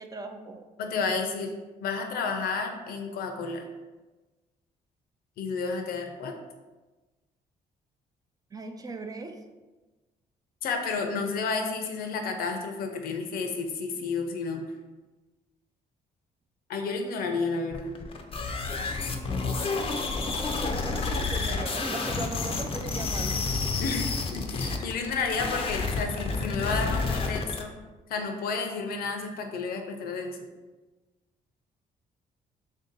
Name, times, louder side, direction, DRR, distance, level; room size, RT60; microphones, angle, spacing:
voice 1, 0.0-0.6 8.5-9.4 20.3-23.4, right 3 dB, 25° right, 6 dB, 0.5 m, -38 dB
voice 2, 0.8-1.5 1.8-3.7 5.4-6.3 10.6-14.6 16.7-17.9 23.8-27.7 28.1-30.4, left 4 dB, 80° left, 4 dB, 0.6 m, -31 dB
sound 1, 17.7-27.6, left 4 dB, 35° left, 0.5 m, -30 dB
3.5 x 2.7 x 3.8 m, 1.2 s
cardioid pair, 85°, 15 cm